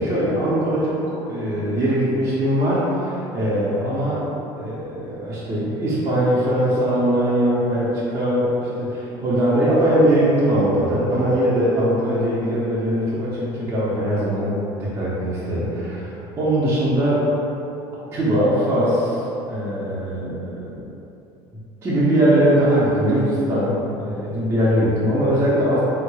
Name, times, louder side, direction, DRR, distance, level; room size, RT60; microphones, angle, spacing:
voice 1, 0.0-4.2 4.6-14.5 14.8-17.2 18.1-20.9 21.8-23.8 24.0-25.8, right 1 dB, 25° right, -10 dB, 0.6 m, -21 dB
3.5 x 3.0 x 2.2 m, 2.9 s
cardioid pair, 140°, 11 cm